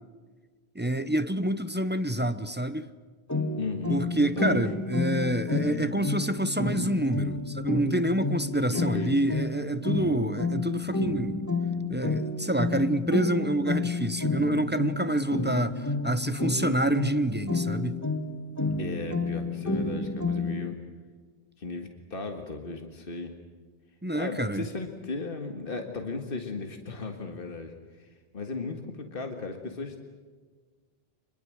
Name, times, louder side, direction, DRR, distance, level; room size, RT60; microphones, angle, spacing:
voice 1, 0.7-2.9 3.9-11.5 11.9-18.0 24.0-24.7, right 1 dB, 10° right, 0.7 m, -27 dB
sound 1, 3.3-20.7, left 3 dB, 15° left, 1.6 m, -30 dB
voice 2, 3.6-4.6 8.7-9.1 18.8-20.8 21.6-23.3 24.1-28.1 28.3-30.0, left 3 dB, 60° left, 2.0 m, -36 dB
26.5 x 21.5 x 7.8 m
omnidirectional pair, 1.1 m